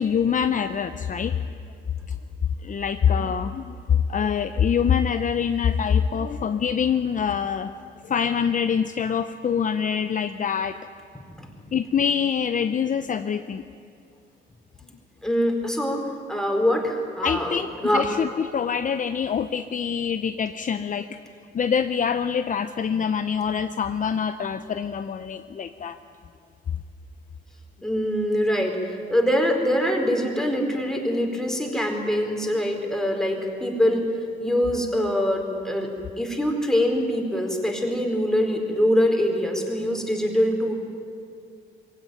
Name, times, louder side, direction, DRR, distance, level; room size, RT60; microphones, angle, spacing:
voice 1, 0.0-1.4 2.6-7.7 8.0-10.8 11.7-13.6 17.2-21.2 21.5-26.0, left 7 dB, 40° left, 9 dB, 0.7 m, -25 dB
voice 2, 15.2-16.0 16.3-18.1 27.8-28.8 29.1-34.0 34.4-35.9 36.2-40.7, equal, 5° left, 1 dB, 4.4 m, -23 dB
22.0 x 16.5 x 9.4 m, 2.4 s
cardioid pair, 90°, 20 cm